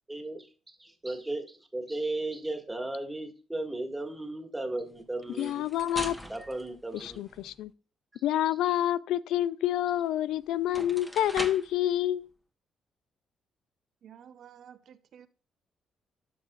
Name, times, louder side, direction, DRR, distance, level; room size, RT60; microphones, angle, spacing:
voice 1, 0.1-5.7 6.3-7.2, right 2 dB, 10° right, 1.7 m, -36 dB
sound 1, 5.2-7.6 10.1-10.2 10.6-11.8, equal, 5° left, 1.1 m, -41 dB
voice 2, 5.4-6.2 6.9-7.7 8.2-12.3, left 12 dB, 85° left, 0.3 m, -28 dB
voice 3, 14.0-15.3, right 9 dB, 65° right, 0.6 m, -52 dB
12.5 x 5.6 x 2.4 m
cardioid pair, 90°, 0 cm